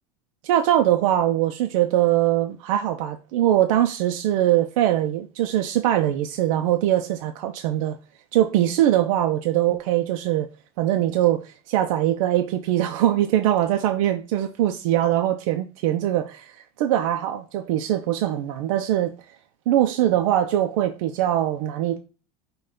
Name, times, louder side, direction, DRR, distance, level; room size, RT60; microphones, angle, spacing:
voice 1, 0.4-8.0 8.3-10.5 10.8-16.5 16.8-19.1 19.7-22.0, right 12 dB, 85° right, 0.5 m, -22 dB
5.4 x 2.3 x 3.7 m
cardioid pair, 180°, 17 cm